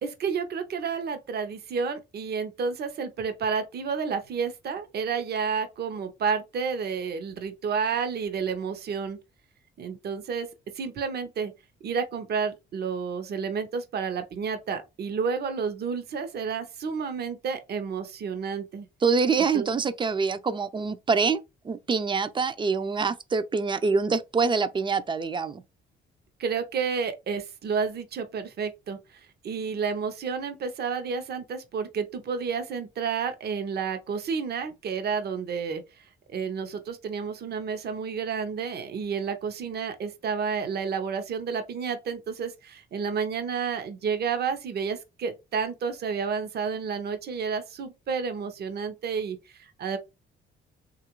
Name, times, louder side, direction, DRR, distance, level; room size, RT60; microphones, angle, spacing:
voice 1, 0.0-9.2 9.8-10.5 10.7-11.5 11.8-18.9 19.5-19.7 26.4-29.0 29.4-35.8 36.3-50.0, right 6 dB, 55° right, 0.7 m, -30 dB
voice 2, 19.0-25.6, right 5 dB, 25° right, 0.4 m, -25 dB
3.2 x 2.4 x 2.9 m
cardioid pair, 90°, 20 cm